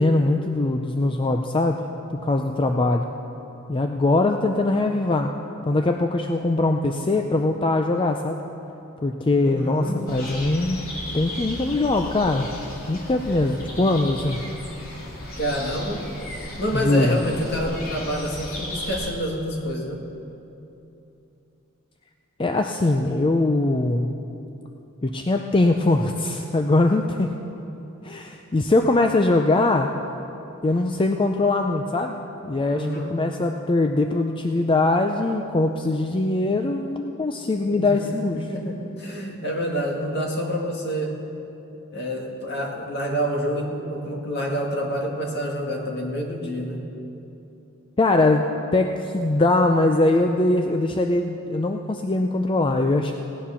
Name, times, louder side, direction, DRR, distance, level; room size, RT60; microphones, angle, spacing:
voice 1, 0.0-1.8 2.2-3.1 3.7-5.3 5.7-8.4 9.0-10.8 11.1-12.5 12.9-14.4 16.7-17.2 22.4-24.2 25.0-27.3 28.0-29.9 30.6-32.2 32.4-38.5 48.0-53.1, left 2 dB, 25° left, 4 dB, 0.4 m, -22 dB
voice 2, 9.4-10.1 15.4-16.1 16.6-20.0 32.7-33.2 37.7-38.0 38.3-41.2 41.9-46.9, equal, 55° left, 0 dB, 2.0 m, -28 dB
sound 1, 10.1-19.1, left 1 dB, 75° left, 2.7 m, -35 dB
17.0 x 9.8 x 5.7 m, 2.9 s
head